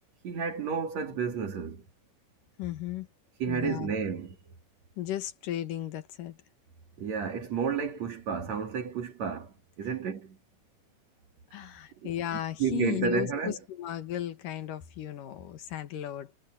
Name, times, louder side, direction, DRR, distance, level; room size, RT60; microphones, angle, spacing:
voice 1, 0.2-1.9 3.4-4.5 7.0-10.4 12.0-13.6, right 6 dB, 55° right, 3.5 m, -32 dB
voice 2, 2.6-3.1 3.5-3.9 5.0-6.4 11.5-16.3, left 12 dB, 80° left, 3.0 m, -35 dB
omnidirectional pair, 3.8 m